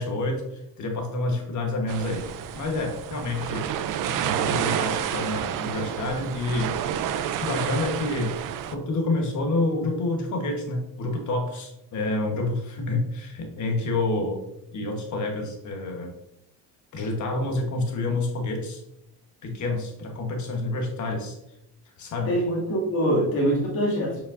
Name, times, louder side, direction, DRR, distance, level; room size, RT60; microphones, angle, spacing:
voice 1, 0.0-2.2 2.6-3.7 4.1-6.8 7.4-8.3 8.7-14.4 14.7-16.1 16.9-18.8 19.4-21.3 22.0-22.3, left 2 dB, 45° left, 2 dB, 1.2 m, -28 dB
sound 1, 1.9-8.7, right 9 dB, 55° right, 0.5 m, -29 dB
voice 2, 22.3-24.2, equal, 60° left, -4 dB, 2.4 m, -24 dB
7.2 x 5.4 x 2.6 m, 0.83 s
cardioid pair, 170°, 39 cm